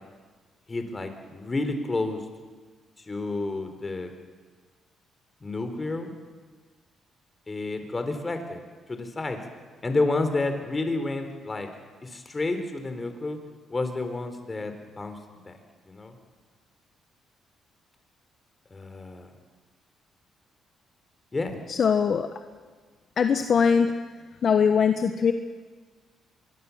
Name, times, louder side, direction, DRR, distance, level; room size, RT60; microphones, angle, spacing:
voice 1, 0.7-2.2 3.0-4.1 5.4-6.1 7.5-8.6 8.9-9.4 9.8-11.7 12.0-13.4 13.7-15.2 15.5-15.6 15.9-16.1 18.7-19.3 21.3-21.6, left 2 dB, 25° left, 7 dB, 4.0 m, -30 dB
voice 2, 21.7-22.3 23.2-23.9 24.4-25.3, left 6 dB, 50° left, 7 dB, 1.2 m, -21 dB
25.0 x 22.5 x 7.3 m, 1.4 s
cardioid pair, 90°, 0 cm